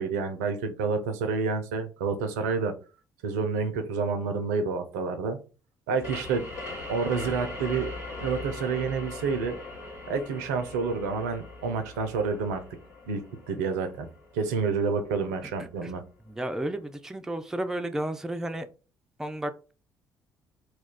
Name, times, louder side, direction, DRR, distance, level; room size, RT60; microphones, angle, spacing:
voice 1, 0.0-2.7 3.2-5.4 5.9-6.5 6.9-7.9 8.2-9.6 10.1-12.6 13.1-14.1 14.3-16.0, right 5 dB, 70° right, 7 dB, 0.4 m, -29 dB
sound 1, 6.0-15.4, left 2 dB, 70° left, 1.3 m, -40 dB
voice 2, 15.4-15.9 16.3-18.7 19.2-19.7, right 1 dB, 5° right, 8 dB, 0.3 m, -33 dB
2.3 x 2.2 x 3.5 m, 0.35 s
figure-of-eight pair, 45°, 9 cm